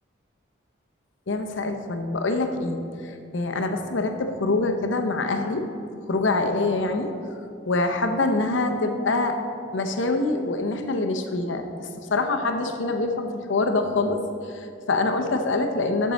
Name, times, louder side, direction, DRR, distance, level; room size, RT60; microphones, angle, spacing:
voice 1, 1.3-5.7 6.1-7.1 7.7-9.4 9.7-14.2 14.5-16.1, left 2 dB, 75° left, 5 dB, 0.7 m, -25 dB
13.0 x 4.6 x 4.1 m, 2.4 s
head